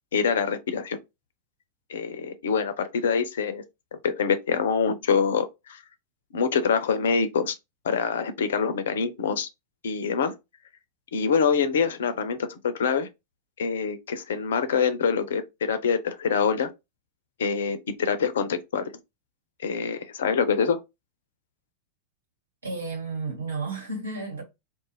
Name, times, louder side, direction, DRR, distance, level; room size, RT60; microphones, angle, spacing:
voice 1, 0.1-1.0 1.9-3.6 3.9-5.8 6.3-7.5 7.8-9.5 9.8-10.3 11.1-13.1 13.6-16.7 17.4-19.0 19.6-20.8, left 6 dB, 60° left, 0.4 m, -25 dB
voice 2, 22.6-24.4, right 3 dB, 70° right, 1.2 m, -32 dB
2.4 x 2.1 x 3.0 m
figure-of-eight pair, 90°, 0 cm